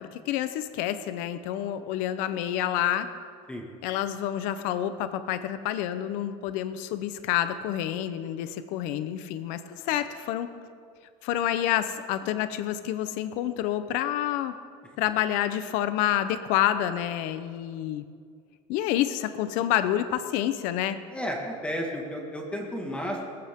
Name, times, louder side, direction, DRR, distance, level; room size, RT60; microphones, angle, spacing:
voice 1, 0.0-3.1 3.8-10.5 11.2-14.6 15.0-18.0 18.7-21.0, left 12 dB, 70° left, 11 dB, 0.8 m, -28 dB
voice 2, 21.1-23.2, equal, 10° left, 1 dB, 1.8 m, -32 dB
19.0 x 14.5 x 3.7 m, 2.1 s
cardioid pair, 150°, 14 cm